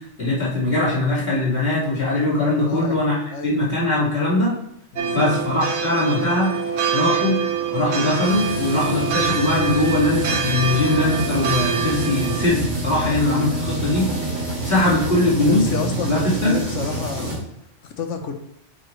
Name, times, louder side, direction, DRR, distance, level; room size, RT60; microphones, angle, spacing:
voice 1, 0.2-4.5 5.1-6.5 6.9-7.4 7.7-14.1 14.6-16.6, left 2 dB, 55° left, -7 dB, 2.7 m, -21 dB
voice 2, 2.7-3.0 3.3-3.6 4.9-5.3 15.4-17.4 18.0-18.3, left 5 dB, 80° left, 5 dB, 1.2 m, -29 dB
sound 1, 5.0-12.5, right 7 dB, 90° right, 1.1 m, -25 dB
sound 2, 8.2-17.3, right 2 dB, 65° right, 2.4 m, -28 dB
sound 3, 9.7-16.3, right 1 dB, 20° right, 1.1 m, -34 dB
8.4 x 4.8 x 3.2 m, 0.77 s
omnidirectional pair, 1.2 m